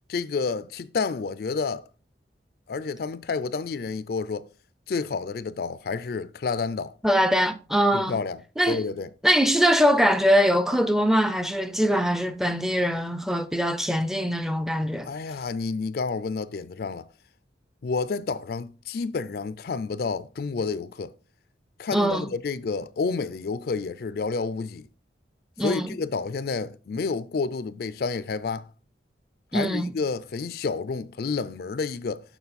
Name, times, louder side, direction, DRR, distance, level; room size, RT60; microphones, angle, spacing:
voice 1, 0.1-1.8 2.7-4.4 4.9-6.9 7.9-8.4 8.7-9.1 15.0-17.1 17.8-21.1 21.8-24.9 25.6-28.7 29.5-32.2, left 4 dB, 55° left, 0.4 m, -29 dB
voice 2, 7.0-8.2 8.6-8.9 9.2-15.1 21.9-22.3 25.6-25.9 29.5-29.9, equal, ahead, 0.4 m, -22 dB
7.0 x 5.8 x 4.1 m
head